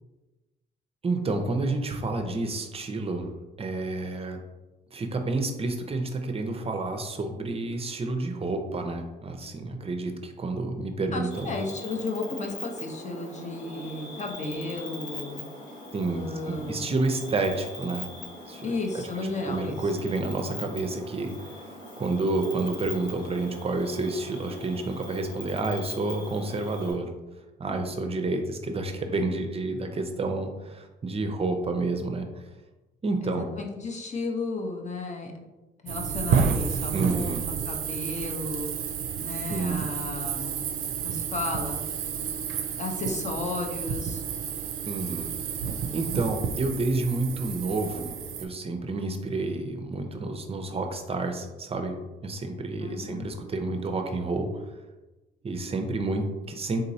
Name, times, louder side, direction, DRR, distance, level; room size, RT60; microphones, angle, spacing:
voice 1, 1.0-3.3 3.6-4.4 4.9-11.6 15.9-18.1 18.5-18.7 19.2-21.6 22.0-27.1 27.6-32.3 33.0-33.5 36.9-37.4 39.5-39.9 44.9-45.3 45.9-52.0 52.2-54.6 55.4-56.8, right 2 dB, 30° right, 5 dB, 0.5 m, -29 dB
voice 2, 11.1-15.4 16.0-17.0 18.6-19.8 33.2-35.4 35.8-37.3 37.7-38.7 39.2-40.6 41.0-41.8 42.8-44.2 52.8-53.3, left 3 dB, 35° left, 2 dB, 0.7 m, -34 dB
Cricket, 11.3-26.9, left 2 dB, 85° left, 1.3 m, -41 dB
sound 1, 35.9-48.4, right 7 dB, 90° right, 0.4 m, -30 dB
3.8 x 2.9 x 2.7 m, 1.1 s
cardioid pair, 90°, 20 cm